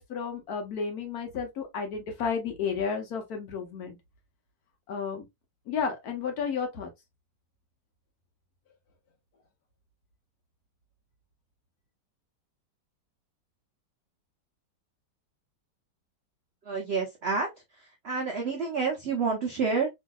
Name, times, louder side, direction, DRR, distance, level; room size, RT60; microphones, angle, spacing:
voice 1, 0.0-4.0 4.9-5.2 5.7-6.9, left 6 dB, 65° left, 1.2 m, -32 dB
voice 2, 16.7-17.5 18.0-19.9, right 4 dB, 70° right, 0.6 m, -28 dB
3.0 x 2.7 x 2.2 m
omnidirectional pair, 1.9 m